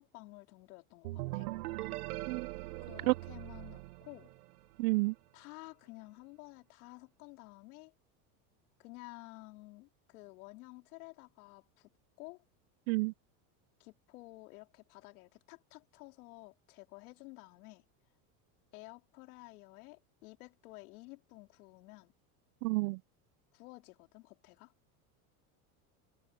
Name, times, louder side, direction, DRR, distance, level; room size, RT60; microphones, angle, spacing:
voice 1, 0.0-1.5 2.8-4.3 5.3-7.9 8.8-11.9 12.2-12.4 13.8-17.8 18.7-22.1 23.5-24.7, left 22 dB, 80° left, 3.4 m, -52 dB
sound 1, 1.0-4.8, right 19 dB, 85° right, 1.1 m, -41 dB
voice 2, 4.8-5.1 12.9-13.1 22.6-23.0, right 24 dB, 70° right, 0.7 m, -29 dB
supercardioid pair, 120°, 44 cm